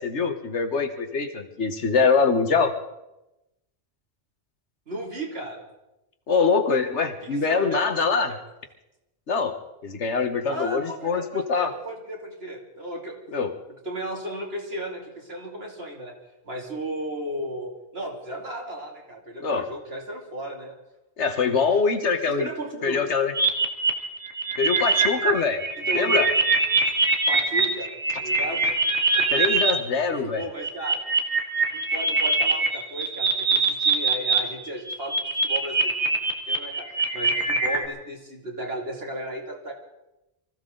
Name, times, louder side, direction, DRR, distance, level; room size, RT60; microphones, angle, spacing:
voice 1, 0.0-2.7 6.3-8.3 9.3-9.5 9.8-11.7 13.3-13.5 19.4-19.6 21.2-22.5 22.8-23.3 24.6-25.6 25.9-26.3 29.3-30.4, left 5 dB, 85° left, 6 dB, 1.6 m, -23 dB
voice 2, 4.9-5.6 7.2-8.4 10.5-13.2 13.8-16.1 16.4-20.7 21.7-21.8 22.3-23.0 25.9-26.3 27.3-27.9 28.2-28.8 29.2-29.4 30.1-31.0 31.7-35.9 36.5-39.7, right 1 dB, 60° right, -1 dB, 3.1 m, -35 dB
sound 1, 23.3-29.7 30.4-34.4 34.6-37.9, right 4 dB, 80° right, 2.2 m, -23 dB
24.0 x 15.0 x 3.9 m, 0.96 s
omnidirectional pair, 1.1 m